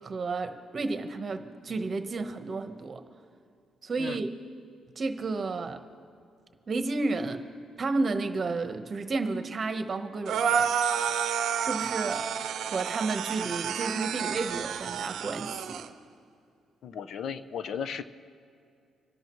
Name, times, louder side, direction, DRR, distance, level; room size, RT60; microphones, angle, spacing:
voice 1, 0.0-3.0 3.8-4.3 5.0-5.8 6.7-7.5 7.8-10.7 11.6-12.3 12.7-15.8, right 3 dB, 40° right, 7 dB, 1.1 m, -32 dB
sound 1, 10.3-15.9, right 7 dB, 75° right, 0.7 m, -30 dB
voice 2, 16.8-18.0, left 7 dB, 65° left, 12 dB, 0.6 m, -35 dB
26.5 x 12.0 x 3.1 m, 2.5 s
cardioid pair, 100°, 0 cm